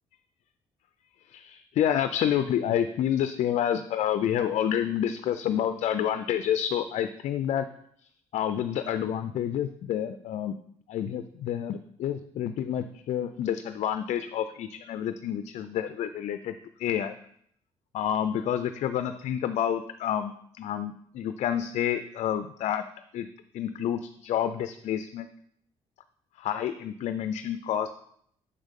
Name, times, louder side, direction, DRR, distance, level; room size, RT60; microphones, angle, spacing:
voice 1, 1.3-7.7 8.3-10.6 10.9-17.1 17.9-22.8 23.1-23.3 23.5-25.3 26.4-27.9, left 10 dB, 65° left, 10 dB, 0.4 m, -29 dB
6.5 x 5.2 x 3.6 m, 0.66 s
cardioid pair, 80°, 13 cm